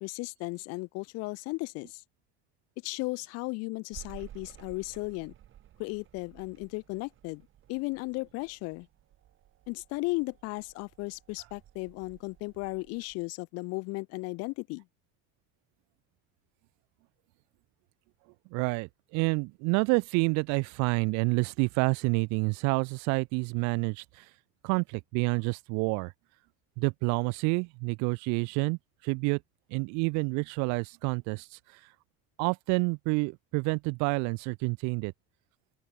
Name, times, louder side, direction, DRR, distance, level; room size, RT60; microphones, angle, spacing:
voice 1, 0.0-2.0 2.8-5.3 5.8-7.4 7.7-8.9 9.7-14.8, left 25 dB, 55° left, 0.4 m, -35 dB
sound 1, 3.9-13.3, right 11 dB, 40° right, 7.4 m, -54 dB
voice 2, 18.5-24.3 24.6-26.1 26.8-29.4 29.7-31.8 32.4-35.1, right 31 dB, 65° right, 0.5 m, -28 dB
open air
cardioid pair, 150°, 31 cm